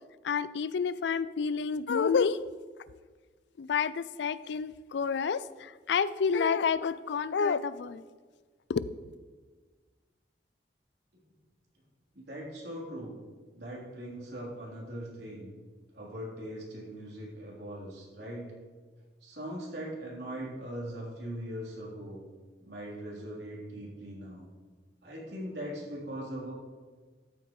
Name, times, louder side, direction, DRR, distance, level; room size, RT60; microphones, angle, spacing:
voice 1, 0.2-2.4 3.6-8.0 8.7-8.9, left 6 dB, 80° left, 17 dB, 0.4 m, -29 dB
voice 2, 12.1-13.2 13.5-15.5 15.9-18.5 19.2-22.2 22.6-24.5 25.0-26.5, right 1 dB, 75° right, -4 dB, 3.6 m, -40 dB
13.5 x 8.6 x 3.2 m, 1.4 s
head